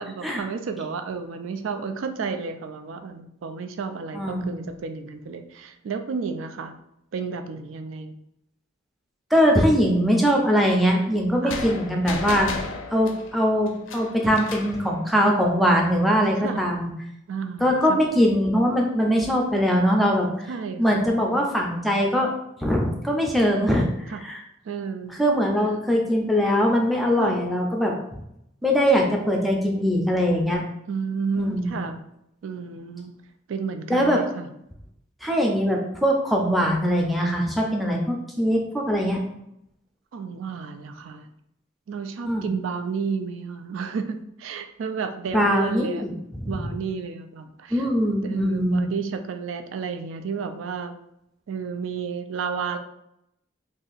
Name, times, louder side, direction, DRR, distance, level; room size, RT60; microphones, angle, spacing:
voice 1, 0.0-6.8 7.1-8.2 11.4-11.6 16.4-16.7 17.3-18.0 20.5-21.1 24.1-24.2 24.7-25.1 25.6-25.7 27.2-27.4 30.9-32.0 32.4-33.1 33.5-34.5 40.1-41.3 41.9-46.0 46.5-47.9 48.2-51.0 51.5-52.8, right 5 dB, 80° right, 7 dB, 0.3 m, -32 dB
voice 2, 4.1-4.6 9.3-12.5 12.9-16.9 17.6-20.5 20.8-22.3 22.6-23.9 24.2-24.4 25.2-27.9 28.6-30.6 31.4-31.8 33.9-34.2 35.2-39.2 42.3-42.5 45.3-46.5 47.7-48.8, equal, ahead, 0 dB, 0.5 m, -22 dB
sound 1, 11.5-14.8, left 4 dB, 75° left, 0.5 m, -34 dB
2.7 x 2.5 x 3.9 m, 0.78 s
head